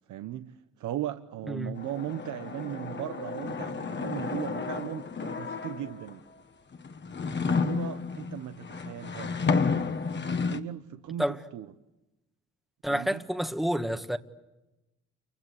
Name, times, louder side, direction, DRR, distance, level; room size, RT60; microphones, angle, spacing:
voice 1, 0.1-6.2 7.3-9.5 10.2-11.7 12.9-13.2, right 12 dB, 75° right, 1.1 m, -38 dB
sound 1, 1.8-6.1 6.7-10.6, left 5 dB, 35° left, 1.6 m, -31 dB
voice 2, 12.8-14.2, equal, ahead, 1.5 m, -29 dB
29.0 x 24.5 x 8.2 m
cardioid pair, 90°, 30 cm